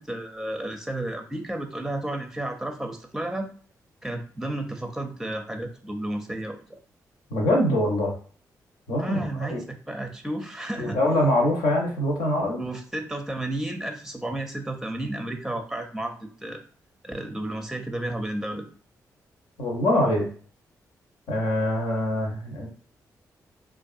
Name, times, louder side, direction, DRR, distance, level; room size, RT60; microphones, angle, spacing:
voice 1, 0.0-3.5 4.0-6.8 9.0-11.0 12.6-16.6 17.0-18.7, right 1 dB, 5° right, 5 dB, 0.5 m, -32 dB
voice 2, 7.3-8.1 8.9-9.2 9.5-9.6 10.8-12.6 19.6-20.3 21.3-22.7, left 1 dB, 85° left, 0 dB, 0.8 m, -23 dB
2.5 x 2.4 x 2.4 m, 0.43 s
cardioid pair, 60°, 7 cm